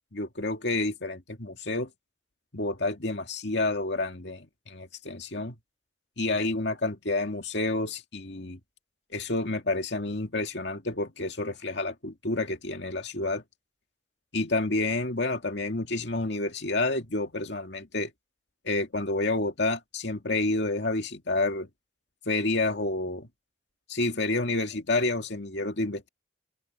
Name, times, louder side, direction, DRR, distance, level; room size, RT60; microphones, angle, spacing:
voice 1, 0.1-1.9 2.5-5.6 6.2-8.6 9.1-13.4 14.3-18.1 18.6-21.7 22.3-23.3 23.9-26.1, left 2 dB, 70° left, 2.2 m, -29 dB
open air
head